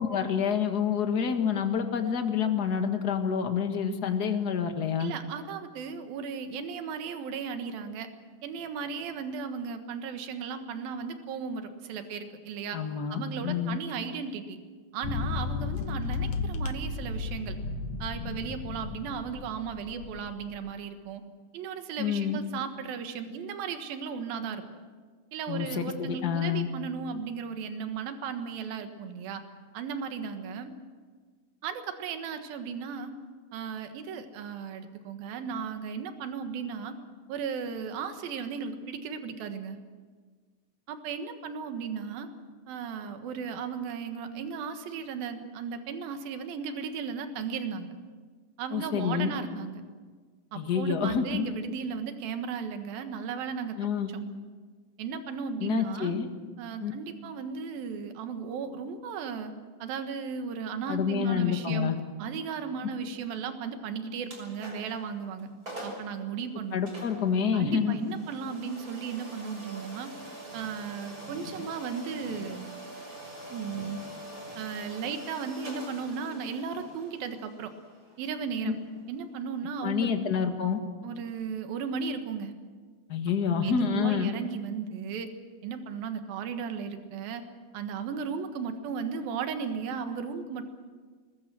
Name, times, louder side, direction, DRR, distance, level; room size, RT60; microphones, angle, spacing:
voice 1, 0.0-5.1 12.7-13.8 22.0-22.4 25.5-26.7 48.7-49.3 50.5-51.4 53.8-54.1 55.6-56.3 56.8-56.9 60.9-61.9 66.7-68.0 78.6-78.7 79.8-80.8 83.1-84.3, left 7 dB, 40° left, 6 dB, 1.4 m, -28 dB
voice 2, 5.0-8.1 8.4-12.8 13.1-14.6 14.9-17.6 18.0-21.2 21.5-24.6 25.3-29.4 29.7-30.7 31.6-33.1 33.5-37.0 37.3-39.8 40.9-42.3 42.7-47.9 48.6-49.8 50.5-53.8 54.1-54.2 55.0-56.1 56.6-59.5 59.8-61.9 62.2-65.5 65.8-66.8 67.5-70.1 70.5-72.7 73.5-74.0 74.5-77.7 78.2-78.8 79.1-80.2 81.0-82.5 83.5-85.3 85.6-87.4 87.7-90.7, right 6 dB, 80° right, 7 dB, 3.3 m, -35 dB
sound 1, 15.0-20.6, left 4 dB, 65° left, 1.7 m, -34 dB
sound 2, 64.2-65.0 65.4-65.5 65.7-66.1 66.9-79.6, right 1 dB, 25° right, 6.6 m, -44 dB
24.0 x 20.5 x 7.6 m, 1.5 s
omnidirectional pair, 4.2 m